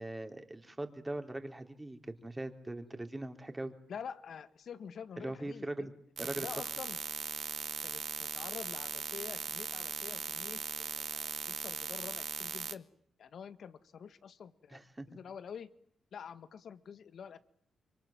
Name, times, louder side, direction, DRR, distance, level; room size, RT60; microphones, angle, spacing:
voice 1, 0.0-3.7 5.2-5.9 6.2-6.5 14.7-15.1, right 1 dB, 15° right, 6 dB, 3.9 m, -41 dB
voice 2, 3.9-5.9 6.2-7.0 7.8-12.9 13.2-15.7 16.1-17.4, left 7 dB, 65° left, 13 dB, 1.7 m, -47 dB
sound 1, 6.2-12.7, right 5 dB, 55° right, 1.5 m, -39 dB
27.0 x 24.0 x 9.0 m, 0.66 s
cardioid pair, 65°, 0 cm